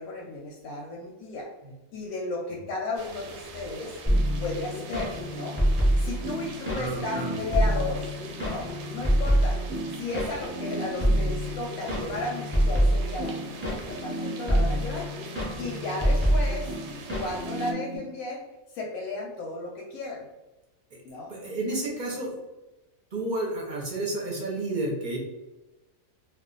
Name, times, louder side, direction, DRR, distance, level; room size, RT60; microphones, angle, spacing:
voice 1, 0.0-1.5 1.9-4.0 4.4-5.6 6.0-9.6 9.9-15.1 15.6-16.8 17.2-20.3 21.0-21.3, left 2 dB, 90° left, -1 dB, 1.0 m, -34 dB
sound 1, 3.0-17.7, right 4 dB, 80° right, 1.0 m, -44 dB
sound 2, 4.1-18.0, equal, 10° right, 0.8 m, -27 dB
voice 2, 6.7-7.3 21.3-22.4 23.1-25.2, right 2 dB, 45° right, -2 dB, 0.6 m, -31 dB
2.3 x 2.3 x 3.7 m, 1.1 s
omnidirectional pair, 1.4 m